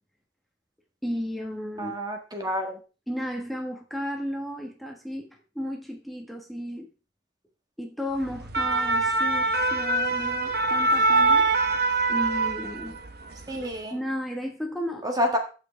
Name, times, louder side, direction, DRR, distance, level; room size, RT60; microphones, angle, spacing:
voice 1, 1.0-1.9 3.1-6.9 7.8-11.5 12.1-13.0 13.9-15.1, equal, ahead, 0 dB, 1.4 m, -34 dB
voice 2, 1.8-2.8 13.5-14.0 15.0-15.4, equal, 20° right, 3 dB, 1.5 m, -28 dB
sound 1, 8.3-13.1 13.4-13.7, right 2 dB, 55° right, 1.0 m, -23 dB
15.5 x 6.0 x 3.4 m, 0.34 s
head